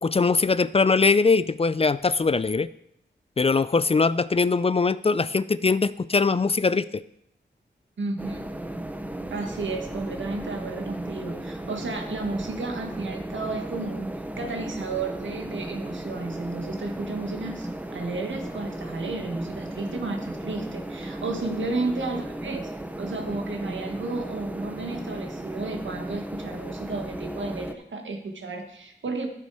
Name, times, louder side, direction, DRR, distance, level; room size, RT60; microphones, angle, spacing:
voice 1, 0.0-2.7 3.4-7.0, left 4 dB, 30° left, 16 dB, 0.4 m, -22 dB
voice 2, 8.0-8.5 9.3-14.1 14.4-22.7 23.0-29.3, right 3 dB, 85° right, 4 dB, 1.5 m, -32 dB
sound 1, 8.2-27.7, right 1 dB, 10° right, 0.8 m, -35 dB
11.5 x 6.9 x 4.8 m, 0.76 s
wide cardioid pair, 65°, 19 cm